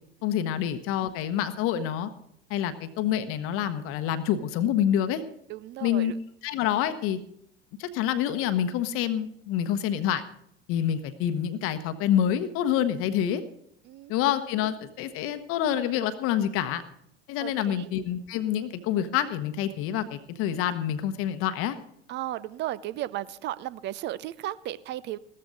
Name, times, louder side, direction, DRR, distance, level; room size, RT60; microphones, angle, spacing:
voice 1, 0.2-2.1 2.5-5.2 5.8-6.1 6.4-7.2 7.8-10.2 10.7-13.4 14.1-16.8 17.3-21.7, left 10 dB, 45° left, 11 dB, 1.1 m, -27 dB
voice 2, 5.5-6.2 13.8-14.1 17.4-17.9 22.1-25.2, right 14 dB, 35° right, 18 dB, 0.6 m, -35 dB
15.5 x 13.0 x 3.9 m, 0.71 s
figure-of-eight pair, 75°, 31 cm